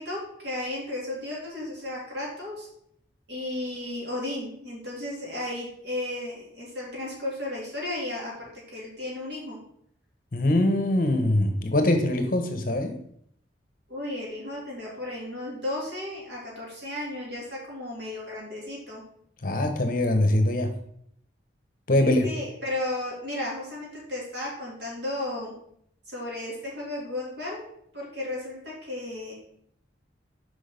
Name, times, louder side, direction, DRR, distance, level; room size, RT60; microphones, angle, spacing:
voice 1, 0.0-2.7 3.3-9.6 13.9-19.0 22.0-25.5 26.1-27.7 27.9-29.3, left 1 dB, 65° right, -3 dB, 3.1 m, -34 dB
voice 2, 10.3-13.0 19.4-20.7 21.9-22.3, left 1 dB, 45° left, 6 dB, 0.9 m, -23 dB
6.2 x 5.2 x 5.1 m, 0.69 s
head